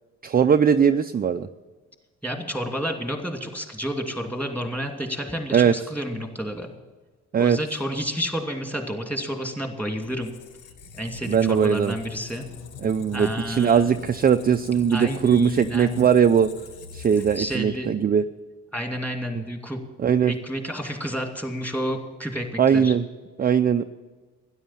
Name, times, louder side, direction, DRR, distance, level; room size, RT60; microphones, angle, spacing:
voice 1, 0.2-1.5 5.5-5.7 7.3-7.6 11.3-11.9 12.8-16.5 16.9-18.2 20.0-20.3 22.6-23.0 23.4-23.8, right 7 dB, 30° right, 8 dB, 0.5 m, -20 dB
voice 2, 2.2-6.7 7.4-10.4 11.0-12.4 13.1-13.9 14.9-16.1 17.4-18.1 18.7-19.8 20.2-22.9, equal, 5° left, 3 dB, 2.7 m, -30 dB
Squeak, 10.0-17.9, left 6 dB, 85° left, 1.2 m, -42 dB
13.0 x 10.5 x 7.5 m, 1.3 s
cardioid pair, 90°, 30 cm